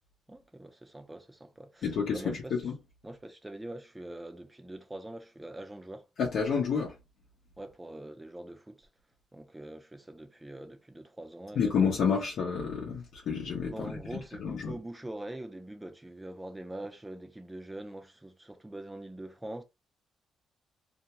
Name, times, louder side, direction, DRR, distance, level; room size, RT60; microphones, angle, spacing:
voice 1, 0.3-2.5 3.0-6.1 7.6-8.9 9.3-11.9 13.7-19.6, right 1 dB, 10° right, 0.5 m, -43 dB
voice 2, 1.8-2.7 6.2-7.0 11.6-14.7, left 6 dB, 65° left, 0.7 m, -30 dB
2.5 x 2.2 x 2.9 m
cardioid pair, 90°, 0 cm